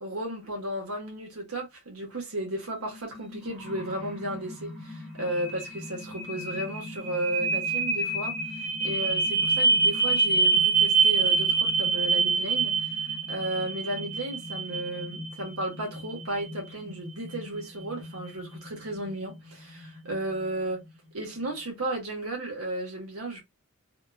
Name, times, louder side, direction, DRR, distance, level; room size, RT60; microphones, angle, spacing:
voice 1, 0.0-8.3 8.8-12.8 13.3-20.8 21.1-23.4, right 1 dB, 90° right, 1.2 m, -34 dB
sound 1, 2.8-20.8, right 4 dB, ahead, 0.7 m, -28 dB
2.8 x 2.3 x 2.3 m
head